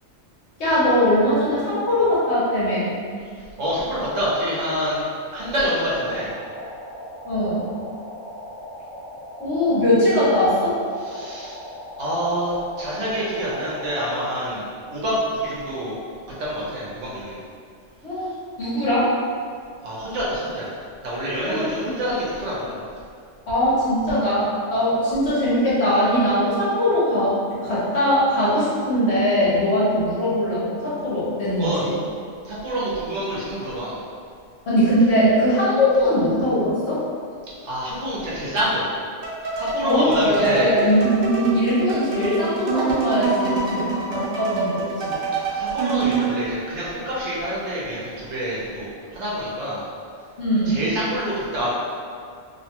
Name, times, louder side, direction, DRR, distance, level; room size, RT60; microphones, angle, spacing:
voice 1, 0.6-3.0 7.2-7.7 9.4-10.7 18.0-18.3 18.6-19.1 21.5-21.9 23.5-31.9 34.7-37.0 39.8-45.2 50.4-50.8, equal, 60° left, -9 dB, 1.1 m, -21 dB
voice 2, 3.6-5.0 5.3-6.3 11.0-11.6 12.0-16.0 16.4-17.4 19.8-20.7 21.0-22.8 31.6-31.9 32.4-33.9 37.6-38.9 39.5-40.7 45.5-49.8 50.7-51.7, equal, 70° right, -7 dB, 1.1 m, -27 dB
sound 1, 5.4-14.2, equal, 85° left, 1.0 m, -39 dB
sound 2, 39.2-46.3, right 4 dB, 55° right, 0.6 m, -26 dB
2.8 x 2.2 x 2.8 m, 2.2 s
omnidirectional pair, 1.3 m